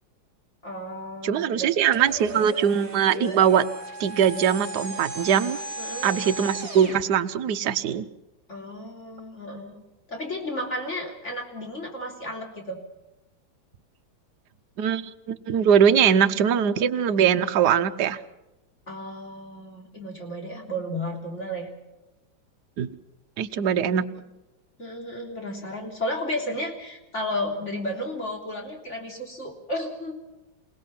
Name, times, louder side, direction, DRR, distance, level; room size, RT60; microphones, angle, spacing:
voice 1, 0.6-1.7 5.8-6.3 8.5-9.8 10.1-12.8 18.9-21.7 24.1-24.2 24.8-30.2, left 1 dB, 35° left, 1 dB, 3.7 m, -33 dB
voice 2, 1.2-3.6 4.0-5.6 6.0-8.1 14.8-18.2 22.8-22.9 23.4-24.1, right 8 dB, 60° right, 9 dB, 1.4 m, -21 dB
sound 1, 1.9-7.0, right 1 dB, 45° right, 4.1 m, -36 dB
28.0 x 18.0 x 5.8 m, 1.0 s
omnidirectional pair, 2.2 m